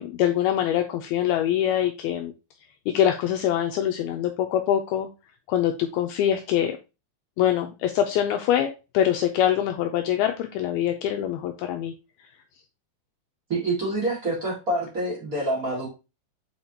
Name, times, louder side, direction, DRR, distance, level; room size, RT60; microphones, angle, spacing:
voice 1, 0.0-2.3 2.9-5.1 5.5-6.8 7.4-11.9, left 10 dB, 90° left, 5 dB, 2.2 m, -24 dB
voice 2, 13.5-15.9, right 1 dB, 35° right, -4 dB, 1.4 m, -27 dB
8.8 x 4.3 x 2.8 m, 0.28 s
omnidirectional pair, 5.0 m